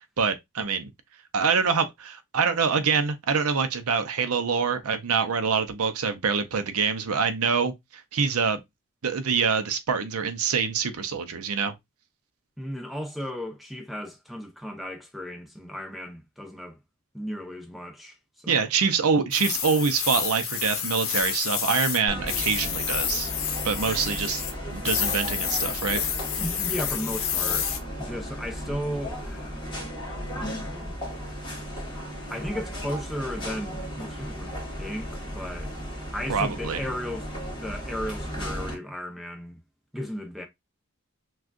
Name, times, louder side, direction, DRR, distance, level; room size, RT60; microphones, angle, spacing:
voice 1, 0.2-0.9 1.3-8.6 9.0-11.7 18.5-23.3 23.6-26.0 36.3-36.8, right 5 dB, 85° right, 0.6 m, -25 dB
voice 2, 12.6-16.8 17.1-18.5 26.4-27.7 28.0-29.7 30.3-31.0 32.3-34.5 34.8-35.7 36.1-39.6 39.9-40.5, equal, ahead, 0.6 m, -35 dB
sound 1, 19.3-22.0 22.3-24.5 24.8-27.8, left 8 dB, 70° left, 0.8 m, -29 dB
sound 2, 22.1-38.7, equal, 20° left, 1.5 m, -35 dB
6.1 x 2.4 x 2.4 m
head